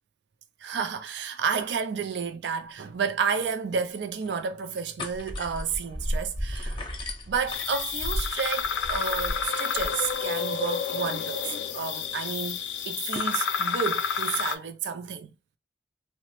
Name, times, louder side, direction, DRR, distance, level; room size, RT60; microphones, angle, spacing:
voice 1, 0.6-6.8 7.3-15.3, right 6 dB, 70° right, 0.4 m, -31 dB
sound 1, 3.0-3.1 3.3-3.4 3.9-4.4 4.7-13.3, left 4 dB, 30° left, 0.6 m, -45 dB
sound 2, 5.2-9.5 9.7-10.1, equal, 30° right, 0.7 m, -34 dB
sound 3, 7.5-14.6, left 6 dB, 85° left, 0.4 m, -30 dB
2.9 x 2.1 x 3.0 m
head